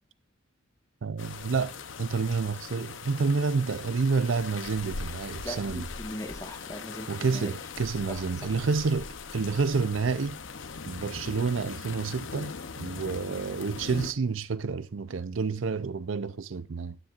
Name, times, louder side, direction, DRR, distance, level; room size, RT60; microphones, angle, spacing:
voice 1, 1.0-5.8 7.1-10.4 10.9-17.0, right 4 dB, 75° right, 0.6 m, -29 dB
sound 1, 1.2-14.1, left 5 dB, 70° left, 0.8 m, -40 dB
voice 2, 5.4-7.5 8.1-8.5, equal, 15° left, 1.5 m, -40 dB
13.0 x 10.0 x 2.5 m
head